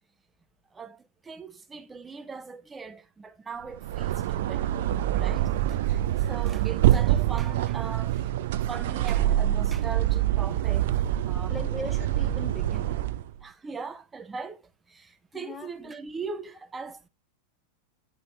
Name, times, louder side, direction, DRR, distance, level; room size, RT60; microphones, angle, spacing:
voice 1, 0.7-4.7 5.1-8.2 8.7-11.0 11.2-11.6 13.4-14.6 14.9-17.1, right 5 dB, 15° right, 0.9 m, -40 dB
sound 1, 3.7-13.3, right 13 dB, 55° right, 0.6 m, -25 dB
voice 2, 11.5-13.0 15.3-15.9, left 2 dB, 5° left, 1.8 m, -39 dB
9.7 x 4.1 x 4.4 m
figure-of-eight pair, 90°, 0 cm